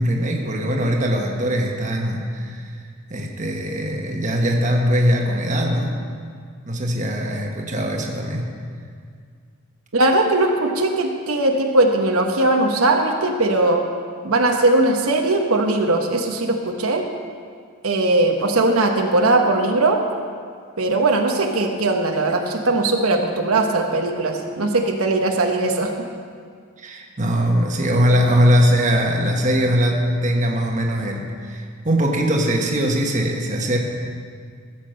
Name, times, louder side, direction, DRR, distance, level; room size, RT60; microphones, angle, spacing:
voice 1, 0.0-2.6 3.1-6.0 6.7-8.5 26.8-33.8, equal, 35° right, 0 dB, 1.4 m, -21 dB
voice 2, 9.9-13.8 14.2-17.0 17.8-20.0 20.8-25.9, right 2 dB, 80° right, 2 dB, 1.1 m, -19 dB
15.0 x 7.4 x 6.5 m, 2.1 s
head